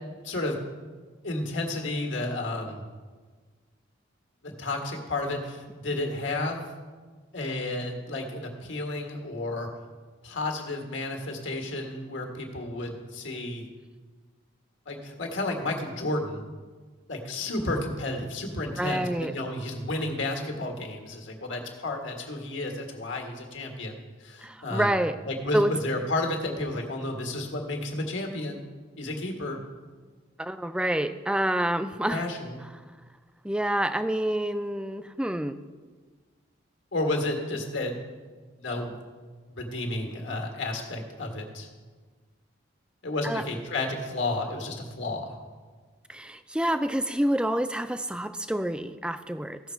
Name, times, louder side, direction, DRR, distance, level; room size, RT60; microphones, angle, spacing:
voice 1, 0.2-0.6 1.2-2.9 4.4-6.7 7.3-9.7 10.2-13.6 14.9-16.4 17.1-24.9 25.3-28.7 29.0-29.6 32.1-32.6 36.9-38.0 38.4-38.9 39.6-41.7 43.0-45.4, left 2 dB, 75° left, 2 dB, 1.7 m, -32 dB
voice 2, 18.8-19.3 24.4-25.2 25.5-25.7 30.4-32.2 33.4-35.5 43.2-43.4 46.1-49.6, right 1 dB, 5° right, 10 dB, 0.3 m, -27 dB
15.5 x 6.3 x 4.5 m, 1.4 s
head